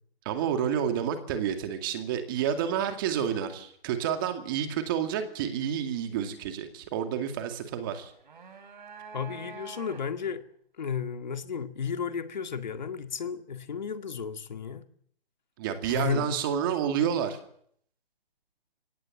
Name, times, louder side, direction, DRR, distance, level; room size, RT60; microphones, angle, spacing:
voice 1, 0.3-8.1 15.6-17.4, right 8 dB, 20° right, 2.3 m, -29 dB
sound 1, 8.0-10.3, right 5 dB, 50° right, 4.0 m, -46 dB
voice 2, 9.1-10.4 10.8-14.9 15.8-16.4, left 6 dB, 45° left, 2.1 m, -33 dB
23.5 x 17.5 x 8.0 m
figure-of-eight pair, 155°, 30 cm